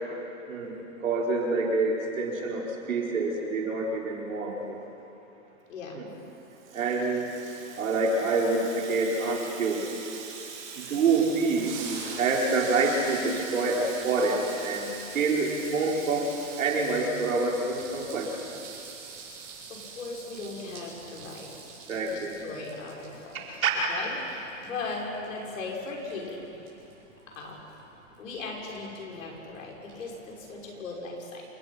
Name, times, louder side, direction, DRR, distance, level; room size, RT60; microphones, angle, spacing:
voice 1, 1.0-4.8 6.0-6.1 6.7-9.9 10.8-11.7 12.2-18.3 21.9-22.3 23.3-23.9, right 3 dB, 75° right, -2 dB, 4.8 m, -27 dB
voice 2, 5.7-6.1 19.7-21.5 22.0-23.5 23.9-26.6 27.3-27.6 28.2-31.4, left 3 dB, 70° left, -2 dB, 6.1 m, -38 dB
Water tap faucet / Sink (filling or washing), 6.2-17.6, right 6 dB, 55° right, 4.9 m, -45 dB
sound 1, 11.0-30.8, right 5 dB, 40° right, 7.0 m, -44 dB
28.0 x 17.5 x 6.0 m, 2.9 s
hypercardioid pair, 170°, 40 cm